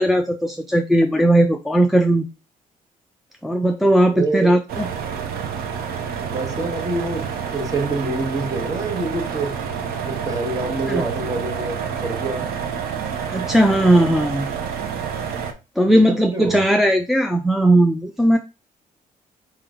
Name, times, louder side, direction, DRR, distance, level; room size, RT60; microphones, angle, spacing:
voice 1, 0.0-2.3 3.4-4.9 10.9-11.0 13.3-14.5 15.8-18.4, right 1 dB, ahead, 0.3 m, -17 dB
voice 2, 4.1-4.5 6.2-9.6 10.0-12.5 15.9-16.6, right 3 dB, 20° right, 1.2 m, -26 dB
sound 1, 4.7-15.5, right 7 dB, 85° right, 0.8 m, -28 dB
4.6 x 3.0 x 3.6 m
cardioid pair, 120°, 15 cm